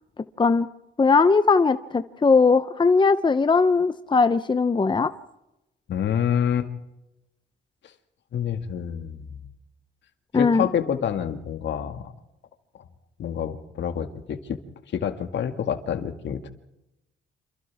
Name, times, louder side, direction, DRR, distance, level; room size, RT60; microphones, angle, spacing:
voice 1, 0.4-0.7 1.0-5.1 10.3-10.7, left 4 dB, 25° left, 11 dB, 0.8 m, -19 dB
voice 2, 5.9-6.7 8.3-9.4 10.3-12.1 13.2-14.6 14.9-16.5, left 8 dB, 65° left, 7 dB, 2.2 m, -27 dB
29.0 x 27.5 x 3.6 m, 0.92 s
cardioid pair, 90°, 20 cm